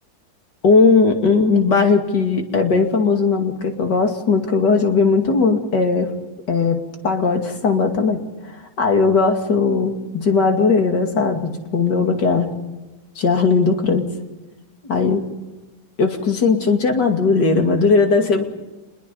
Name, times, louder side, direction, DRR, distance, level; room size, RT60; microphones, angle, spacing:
voice 1, 0.6-6.1 6.5-6.8 7.0-8.2 8.8-12.5 13.2-14.0 14.8-15.2 16.0-18.4, left 4 dB, 60° left, 3 dB, 3.1 m, -18 dB
27.0 x 21.5 x 5.5 m, 1.1 s
omnidirectional pair, 2.1 m